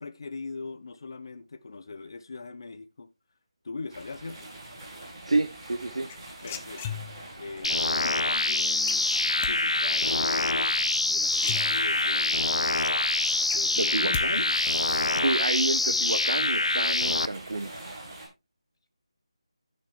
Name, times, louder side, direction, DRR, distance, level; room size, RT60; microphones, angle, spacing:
voice 1, 0.0-3.1 3.6-4.5 6.4-7.0 7.4-9.1 9.4-10.7 11.1-12.7 13.5-14.6 15.0-15.3, left 3 dB, 45° left, 0.9 m, -40 dB
sound 1, 3.9-18.3, right 1 dB, 20° right, 6.4 m, -44 dB
voice 2, 5.2-6.1 13.8-14.4 15.2-17.7, right 2 dB, 75° right, 1.0 m, -29 dB
sound 2, 6.1-7.4 8.9-9.5 11.0-11.1 11.4-12.2 12.6-12.7 13.0-14.3 14.5-15.0, left 8 dB, 15° left, 0.6 m, -36 dB
sound 3, 7.6-17.3, left 2 dB, 90° left, 0.7 m, -25 dB
15.5 x 6.7 x 3.2 m
figure-of-eight pair, 170°, 3 cm